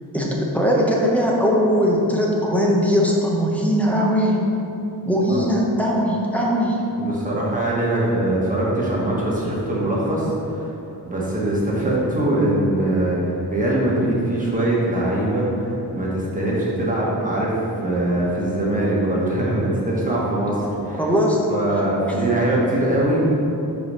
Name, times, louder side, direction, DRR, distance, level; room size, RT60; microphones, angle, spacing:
voice 1, 0.1-4.4 5.0-6.8 21.0-21.5 22.1-22.2, equal, 5° left, -4 dB, 0.8 m, -20 dB
voice 2, 7.0-10.7 11.0-17.5 17.8-21.0 21.5-23.3, right 1 dB, 20° right, -6 dB, 1.4 m, -22 dB
4.8 x 4.7 x 5.5 m, 2.8 s
wide cardioid pair, 135°, 39 cm